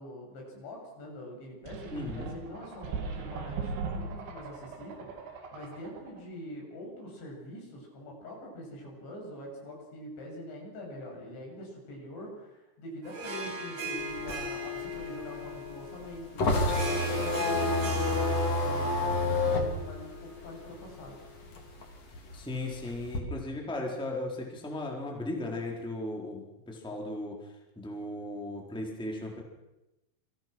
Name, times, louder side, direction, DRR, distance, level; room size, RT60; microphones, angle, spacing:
voice 1, 0.0-21.2, equal, 70° left, 0 dB, 10.0 m, -44 dB
sound 1, 1.7-6.2, right 4 dB, 75° right, 5.0 m, -39 dB
voice 2, 1.9-2.3 22.3-27.4 27.8-29.4, left 1 dB, ahead, 0 dB, 3.6 m, -36 dB
Harp, 13.0-21.7, left 1 dB, 90° right, 9.4 m, -39 dB
sound 2, 14.0-21.1 21.4-23.2, left 2 dB, 35° left, 4.2 m, -29 dB
29.0 x 25.0 x 6.2 m, 0.98 s
omnidirectional pair, 5.4 m